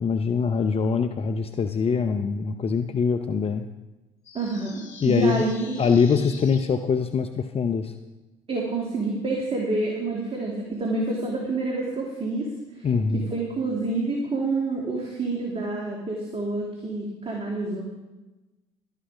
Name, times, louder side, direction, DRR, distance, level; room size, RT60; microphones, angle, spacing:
voice 1, 0.0-3.7 5.0-5.4 5.8-7.9 12.8-13.3, left 5 dB, 35° left, 7 dB, 0.8 m, -23 dB
sound 1, 4.2-6.7, left 5 dB, 85° left, 1.9 m, -45 dB
voice 2, 4.3-5.8 8.5-12.5 12.7-12.9 13.1-17.8, right 2 dB, 35° right, -1 dB, 3.0 m, -28 dB
13.0 x 10.5 x 5.1 m, 1.1 s
hypercardioid pair, 60°, 16 cm